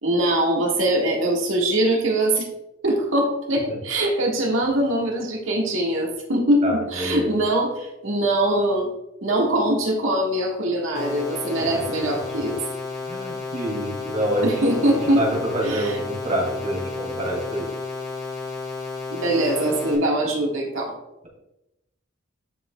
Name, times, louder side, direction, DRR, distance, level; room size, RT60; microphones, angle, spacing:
voice 1, 0.0-2.4 2.8-8.9 9.2-12.6 14.4-15.2 15.6-16.0 19.1-20.9, right 1 dB, 75° right, -1 dB, 1.7 m, -22 dB
voice 2, 6.6-7.4 11.7-12.2 12.4-12.5 13.0-17.7, right 1 dB, 35° right, -1 dB, 2.3 m, -27 dB
sound 1, 10.9-19.9, left 4 dB, 15° left, 1.9 m, -32 dB
10.5 x 5.2 x 2.3 m, 0.90 s
head